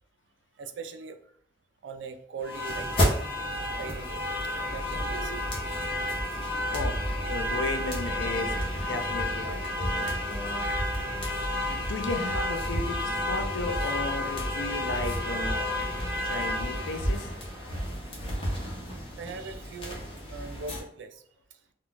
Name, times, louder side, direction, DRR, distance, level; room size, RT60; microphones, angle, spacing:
voice 1, 0.6-1.2 1.8-3.1 3.5-4.2 4.5-5.3 19.2-20.0 20.3-21.2, right 4 dB, 80° right, 8 dB, 0.4 m, -40 dB
sound 1, 2.4-20.8, left 1 dB, 30° left, 0.7 m, -30 dB
voice 2, 6.7-10.7 11.7-15.8 16.2-17.3, left 3 dB, 85° left, 5 dB, 0.5 m, -35 dB
2.3 x 2.2 x 3.8 m, 0.63 s
head